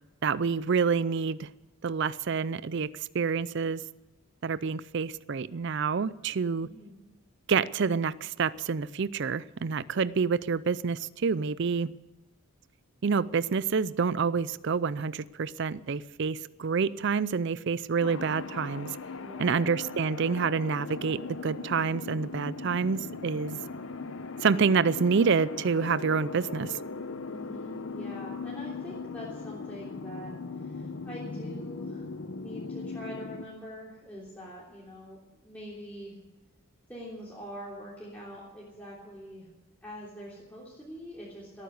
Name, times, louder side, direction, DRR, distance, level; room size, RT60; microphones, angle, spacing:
voice 1, 0.2-1.5 1.8-2.9 3.1-3.8 4.4-6.7 7.5-11.9 13.0-18.9 19.4-23.6 24.4-26.8, right 5 dB, 50° right, 0.4 m, -28 dB
voice 2, 6.6-7.0 19.2-19.7 27.3-32.1 32.3-36.2 36.9-39.5 39.8-41.6, equal, 5° left, 3.3 m, -44 dB
sound 1, 18.0-33.5, left 4 dB, 65° left, 0.8 m, -39 dB
18.0 x 9.5 x 8.2 m
head